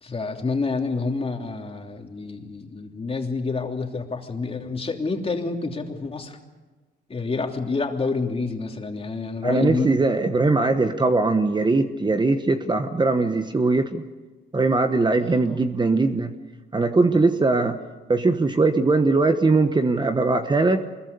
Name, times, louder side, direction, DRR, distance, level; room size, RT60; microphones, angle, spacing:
voice 1, 0.0-6.4 7.1-9.9 15.4-15.7, left 4 dB, 30° left, 2 dB, 3.1 m, -28 dB
voice 2, 9.4-14.0 14.5-16.3 16.7-17.8 18.1-20.8, right 3 dB, 20° right, 8 dB, 1.2 m, -20 dB
25.0 x 21.5 x 6.9 m, 1.3 s
cardioid pair, 90°, 20 cm